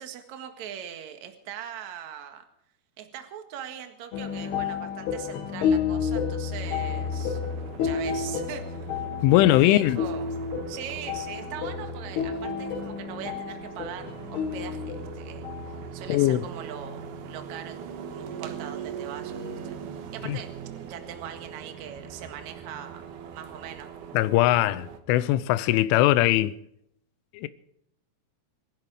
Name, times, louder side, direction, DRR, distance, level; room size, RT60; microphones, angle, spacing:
voice 1, 0.0-2.4 3.0-7.4 7.8-8.9 9.6-10.3 10.7-17.8 18.1-20.5 20.9-23.0 23.3-23.9, right 9 dB, 55° right, 2.2 m, -41 dB
sound 1, 4.1-15.9, left 6 dB, 60° left, 3.7 m, -31 dB
sound 2, 6.6-25.0, right 7 dB, 80° right, 1.8 m, -41 dB
voice 2, 9.2-10.0 16.1-16.4 20.2-20.4 24.1-26.6 27.3-27.5, left 15 dB, 80° left, 3.1 m, -21 dB
27.0 x 11.0 x 4.9 m
omnidirectional pair, 5.6 m